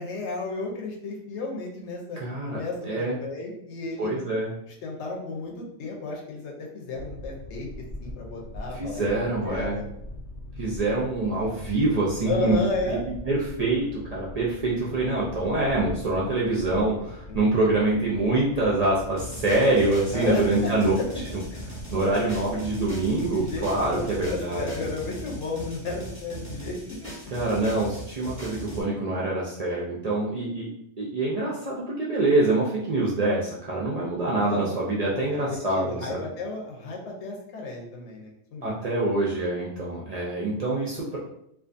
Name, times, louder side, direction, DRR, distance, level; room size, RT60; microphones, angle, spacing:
voice 1, 0.0-2.2 2.5-4.1 4.8-7.7 8.0-9.0 9.4-9.9 12.2-13.0 17.3-17.6 20.1-21.2 21.5-22.1 22.6-22.7 23.3-27.1 34.5-34.7 35.1-38.8, left 3 dB, 80° left, -1 dB, 0.9 m, -33 dB
voice 2, 2.2-3.2 4.0-4.5 8.8-9.8 10.6-12.6 12.9-20.9 21.3-21.4 21.9-24.7 27.3-30.7 31.0-36.2 38.6-41.2, right 2 dB, 60° right, -5 dB, 0.4 m, -25 dB
Boat Water vehicle, 6.9-24.4, left 1 dB, 50° left, 0.7 m, -41 dB
sound 1, 19.2-28.8, right 1 dB, 15° left, 0.8 m, -39 dB
2.5 x 2.3 x 2.5 m, 0.75 s
omnidirectional pair, 1.2 m